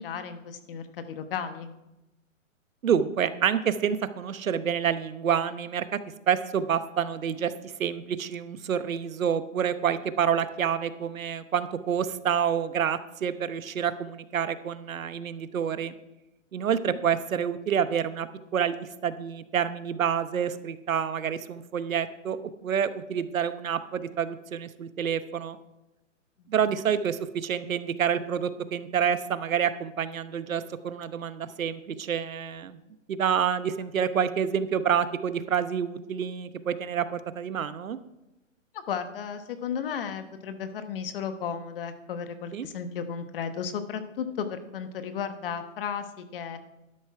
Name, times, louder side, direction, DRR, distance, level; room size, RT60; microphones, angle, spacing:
voice 1, 0.0-1.7 26.4-26.5 33.9-34.3 38.7-46.6, left 7 dB, 45° left, 9 dB, 1.2 m, -34 dB
voice 2, 2.8-5.8 6.3-15.9 16.5-18.3 18.5-25.6 26.5-32.8 33.1-38.0 42.5-42.7, right 8 dB, 85° right, 13 dB, 1.0 m, -28 dB
12.0 x 10.0 x 4.8 m, 0.96 s
hypercardioid pair, 150°, 40 cm